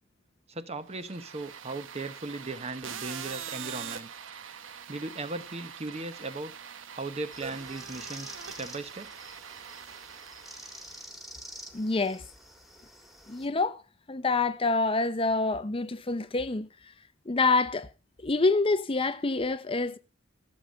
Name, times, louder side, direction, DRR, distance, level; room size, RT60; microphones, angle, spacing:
voice 1, 0.5-4.1 4.9-6.5 6.9-9.1, right 2 dB, 30° right, 0.9 m, -37 dB
sound 1, 0.9-11.1, right 7 dB, 85° right, 0.9 m, -43 dB
sound 2, 7.3-13.5, equal, ahead, 1.8 m, -48 dB
voice 2, 11.7-12.2 13.3-13.8 14.1-16.7 17.3-17.9 18.2-20.0, left 3 dB, 30° left, 0.7 m, -26 dB
15.0 x 7.2 x 5.1 m
head